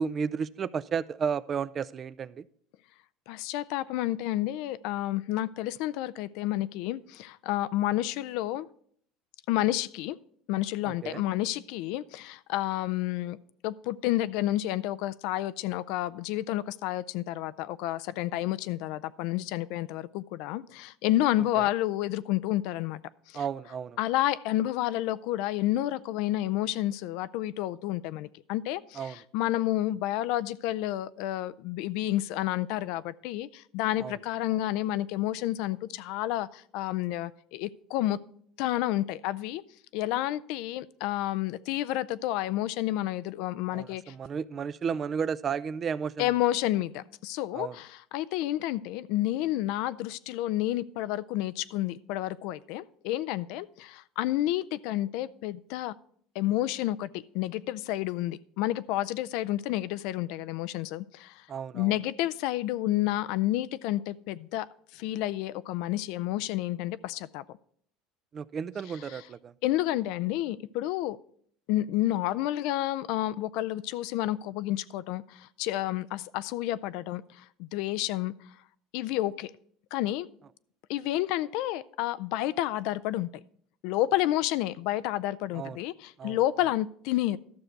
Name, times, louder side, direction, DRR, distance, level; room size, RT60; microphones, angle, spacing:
voice 1, 0.0-2.5 10.9-11.2 21.5-21.7 23.3-24.0 29.0-29.2 34.0-34.2 43.7-46.3 47.5-47.8 61.5-62.0 68.3-69.5 85.5-85.8 86.2-86.4, right 6 dB, 35° right, 17 dB, 0.4 m, -33 dB
voice 2, 3.3-8.7 9.5-10.2 10.5-13.4 13.6-23.0 23.3-23.4 24.0-38.2 38.6-39.6 39.9-44.1 46.2-55.9 56.4-57.1 57.3-61.5 61.7-64.7 64.9-67.6 69.1-69.2 69.6-71.2 71.7-78.3 78.9-79.5 79.9-80.3 80.9-83.3 83.8-87.4, left 14 dB, 70° left, 16 dB, 0.4 m, -30 dB
12.5 x 6.5 x 4.6 m, 0.62 s
supercardioid pair, 110°, 0 cm